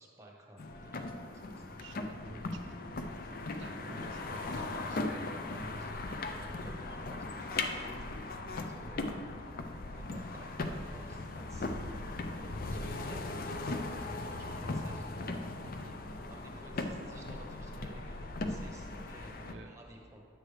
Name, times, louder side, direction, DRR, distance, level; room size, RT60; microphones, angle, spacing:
voice 1, 0.0-1.7 6.2-8.0 8.6-9.0 9.7-11.7 12.7-13.8 14.1-15.2 16.0-19.4 19.6-20.3, right 1 dB, 15° right, 0 dB, 1.0 m, -53 dB
sound 1, 0.6-19.5, left 2 dB, 45° left, 0.5 m, -38 dB
voice 2, 1.8-3.0 3.6-5.9 15.6-16.0 19.3-19.7, right 2 dB, 65° right, 4 dB, 0.5 m, -51 dB
10.5 x 7.8 x 3.3 m, 2.4 s
head